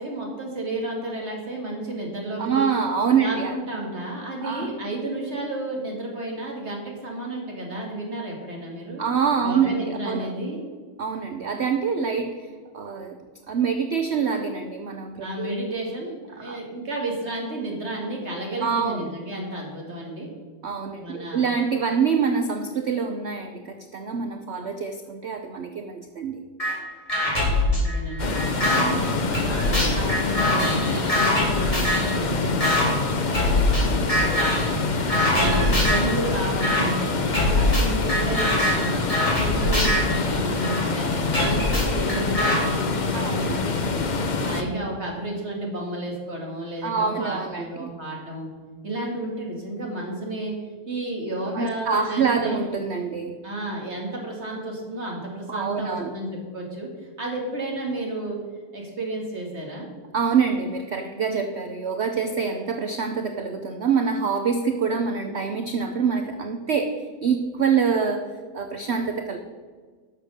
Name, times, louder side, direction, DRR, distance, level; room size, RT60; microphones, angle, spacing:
voice 1, 0.0-2.7 3.2-9.0 9.4-10.6 15.2-20.3 21.0-21.5 27.7-32.9 33.4-34.6 35.0-39.0 39.4-44.0 44.4-48.5 48.8-50.6 50.9-52.6 53.4-56.9 57.2-58.4 58.7-59.9, right 1 dB, 40° right, -1 dB, 2.5 m, -32 dB
voice 2, 2.4-3.6 4.4-4.7 9.0-10.3 11.0-12.5 12.7-13.2 13.5-15.7 16.4-16.6 18.6-19.1 20.6-26.4 43.1-43.6 46.8-47.9 51.5-53.3 55.5-56.2 60.1-69.4, right 6 dB, 55° right, 6 dB, 0.8 m, -25 dB
sound 1, 26.6-26.7 27.1-28.8 29.3-32.2 32.6-32.8 33.3-33.8 34.1-34.7 35.1-36.1 36.6-36.8 37.3-40.8 41.3-42.6, left 1 dB, 20° left, 3.6 m, -23 dB
sound 2, 28.2-44.6, left 3 dB, 40° left, 0.7 m, -26 dB
11.5 x 6.7 x 6.6 m, 1.5 s
omnidirectional pair, 1.8 m